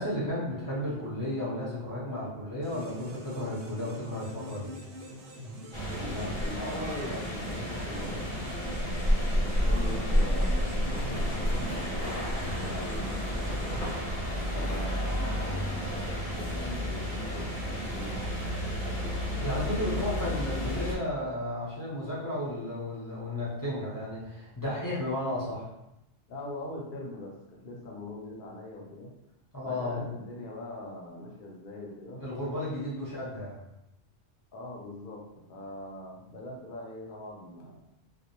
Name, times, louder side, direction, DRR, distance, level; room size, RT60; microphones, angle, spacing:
voice 1, 0.0-4.7 19.4-25.7 29.5-30.0 32.2-33.6, left 1 dB, 20° left, -8 dB, 0.7 m, -33 dB
sound 1, 2.6-14.7, right 1 dB, 90° right, 0.9 m, -45 dB
sound 2, 5.7-21.0, equal, 35° right, 0.6 m, -31 dB
voice 2, 5.9-8.5 9.3-12.3 12.5-13.8 14.5-18.4 26.3-29.1 29.6-32.2 34.5-37.8, left 1 dB, 55° left, -1 dB, 0.7 m, -41 dB
sound 3, 10.9-16.2, left 1 dB, 90° left, 0.9 m, -40 dB
2.3 x 2.0 x 2.9 m, 0.88 s
omnidirectional pair, 1.2 m